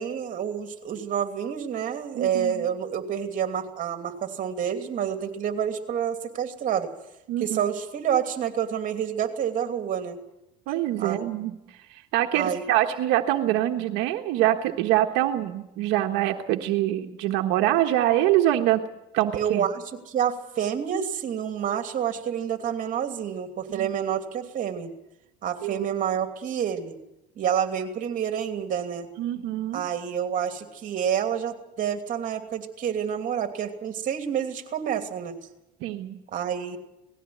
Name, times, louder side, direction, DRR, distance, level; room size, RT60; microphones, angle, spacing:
voice 1, 0.0-6.9 7.4-10.2 11.0-11.3 12.3-12.6 19.3-24.9 25.4-27.0 27.4-29.1 29.7-35.4 36.3-36.8, right 8 dB, 45° right, 6 dB, 2.9 m, -28 dB
voice 2, 2.1-2.7 7.3-7.4 10.7-11.6 11.9-18.8 19.1-19.7 23.7-23.9 25.6-25.7 29.2-29.8 35.8-36.2, right 13 dB, 80° right, 4 dB, 1.4 m, -24 dB
19.0 x 15.5 x 9.5 m, 0.89 s
cardioid pair, 120°, 19 cm